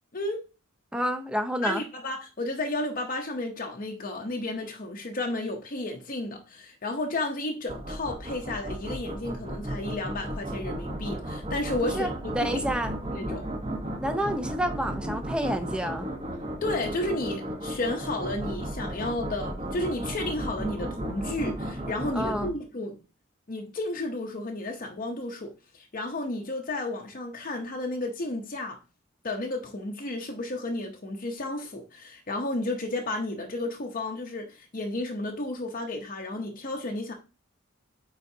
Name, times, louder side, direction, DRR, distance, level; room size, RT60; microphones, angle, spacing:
voice 1, 0.9-1.8 11.8-12.1 12.3-12.9 14.0-16.1 22.1-22.5, equal, 5° right, 0.6 m, -29 dB
voice 2, 1.6-12.1 12.4-12.5 13.1-13.5 16.6-23.0 23.5-28.8 29.2-37.1, left 2 dB, 40° left, 0.7 m, -32 dB
sound 1, 7.7-22.5, right 1 dB, 30° right, 1.0 m, -34 dB
9.0 x 3.8 x 2.7 m
head